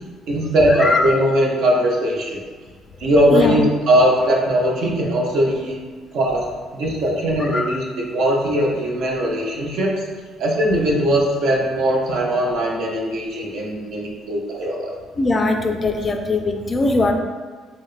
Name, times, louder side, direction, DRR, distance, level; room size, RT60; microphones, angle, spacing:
voice 1, 0.3-2.4 3.0-5.8 6.1-6.4 6.7-9.9 10.4-14.9, equal, 70° right, -1 dB, 0.6 m, -19 dB
voice 2, 7.4-7.7 15.2-17.1, left 3 dB, 30° left, 4 dB, 0.3 m, -20 dB
3.0 x 2.9 x 2.5 m, 1.5 s
cardioid pair, 90°, 0 cm